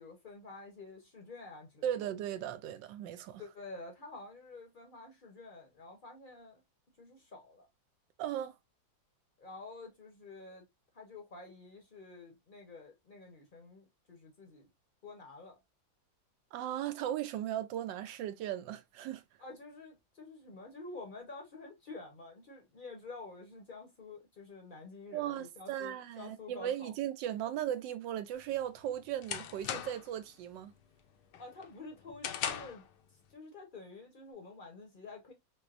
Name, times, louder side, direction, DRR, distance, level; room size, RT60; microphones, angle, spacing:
voice 1, 0.0-1.9 3.4-6.6 7.0-7.7 9.4-10.6 10.9-14.7 15.0-15.6 19.4-26.9 31.4-32.9 33.3-35.3, left 3 dB, 45° left, 0.7 m, -49 dB
voice 2, 1.8-3.4 8.2-8.6 16.5-19.2 25.1-30.7, right 11 dB, 80° right, 1.2 m, -37 dB
sound 1, 28.4-30.2 30.6-30.9 31.3-32.9, left 9 dB, 75° left, 1.2 m, -39 dB
4.4 x 2.0 x 2.4 m
omnidirectional pair, 2.0 m